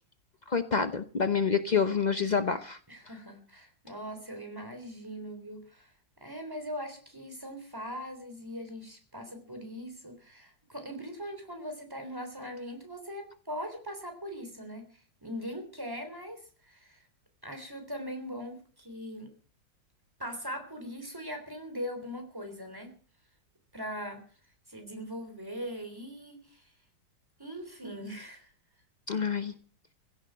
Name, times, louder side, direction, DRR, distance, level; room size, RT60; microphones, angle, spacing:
voice 1, 0.5-2.8 29.1-29.5, left 6 dB, 60° left, 10 dB, 0.4 m, -27 dB
voice 2, 2.9-5.9 6.2-17.0 17.4-19.3 20.2-22.9 23.7-24.2 24.7-26.7 27.4-28.5, equal, 10° right, 5 dB, 3.5 m, -40 dB
16.0 x 9.8 x 7.6 m, 0.43 s
omnidirectional pair, 2.0 m